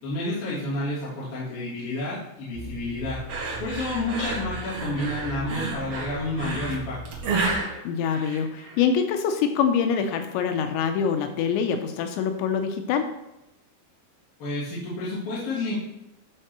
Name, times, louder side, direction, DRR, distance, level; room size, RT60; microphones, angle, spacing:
voice 1, 0.0-3.2 3.6-7.0 14.4-15.7, left 2 dB, 55° left, -10 dB, 4.4 m, -30 dB
sound 1, 2.5-7.6, right 2 dB, 85° right, 3.5 m, -39 dB
sound 2, 3.3-8.8, right 3 dB, 50° right, 1.8 m, -31 dB
voice 2, 7.8-13.1, left 7 dB, 85° left, 6 dB, 3.0 m, -25 dB
11.0 x 4.5 x 6.3 m, 0.90 s
omnidirectional pair, 5.2 m